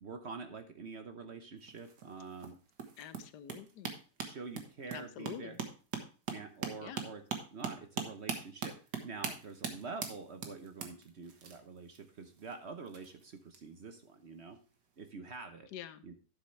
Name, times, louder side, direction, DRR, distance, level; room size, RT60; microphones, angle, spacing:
voice 1, 0.0-2.6 4.2-5.6 6.3-7.2 7.5-14.6 15.0-15.7 16.0-16.1, right 4 dB, 50° right, 7 dB, 1.0 m, -46 dB
sound 1, 1.6-13.6 14.6-14.8 15.1-15.2, right 6 dB, 75° right, 1.9 m, -41 dB
voice 2, 3.0-3.9 4.9-5.6 6.8-7.0 15.7-16.0, left 9 dB, 75° left, 13 dB, 1.3 m, -46 dB
11.5 x 7.0 x 3.2 m, 0.36 s
omnidirectional pair, 1.8 m